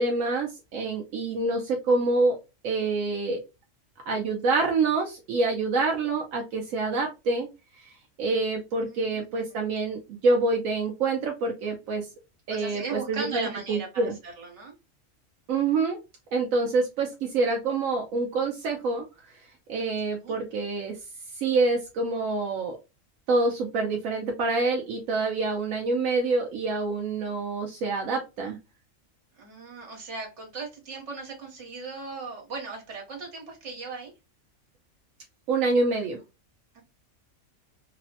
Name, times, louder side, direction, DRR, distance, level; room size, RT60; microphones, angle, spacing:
voice 1, 0.0-2.4 2.6-3.4 4.1-7.5 7.8-7.9 8.2-12.1 12.5-14.1 15.5-16.0 16.3-19.0 19.7-21.0 21.4-22.8 23.3-28.6 35.5-36.2, right 3 dB, 85° right, 1 dB, 1.0 m, -26 dB
voice 2, 8.9-9.6 12.5-14.7 20.2-20.4 29.4-34.1 36.7-36.8, right 4 dB, 65° right, 0 dB, 1.4 m, -38 dB
3.1 x 2.1 x 2.7 m, 0.26 s
omnidirectional pair, 1.4 m